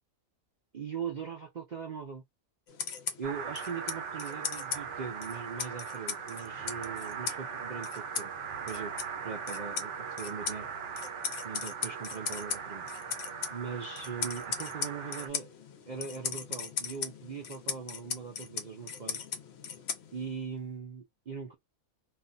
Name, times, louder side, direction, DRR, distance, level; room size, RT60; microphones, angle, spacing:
voice 1, 0.7-2.2 3.2-8.3 8.7-8.9 9.2-10.7 11.4-12.9 13.5-15.5 15.9-19.3 20.1-21.5, right 6 dB, 75° right, 0.4 m, -40 dB
sound 1, 2.7-20.5, left 6 dB, 60° left, 0.7 m, -39 dB
sound 2, 3.2-15.3, right 7 dB, 60° right, 0.9 m, -40 dB
2.5 x 2.2 x 3.8 m
omnidirectional pair, 1.5 m